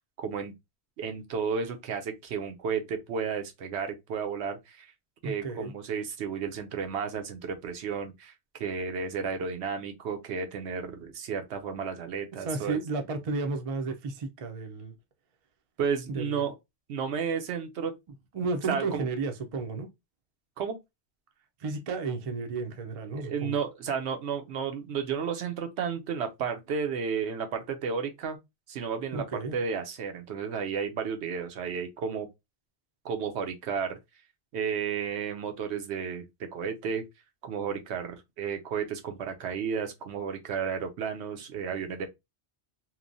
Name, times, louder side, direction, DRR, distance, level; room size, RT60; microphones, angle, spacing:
voice 1, 0.2-0.5 1.0-4.9 5.2-12.8 15.8-16.5 16.9-17.9 18.7-19.1 20.6-20.8 23.1-28.4 28.7-29.2 29.5-32.3 33.0-34.0 34.5-37.0 37.4-42.1, right 6 dB, 75° right, 0.9 m, -32 dB
voice 2, 5.2-5.7 12.4-14.9 16.1-16.5 18.3-19.9 21.6-23.5 29.1-29.5, right 3 dB, 45° right, 0.5 m, -33 dB
3.0 x 2.1 x 2.5 m
omnidirectional pair, 1.1 m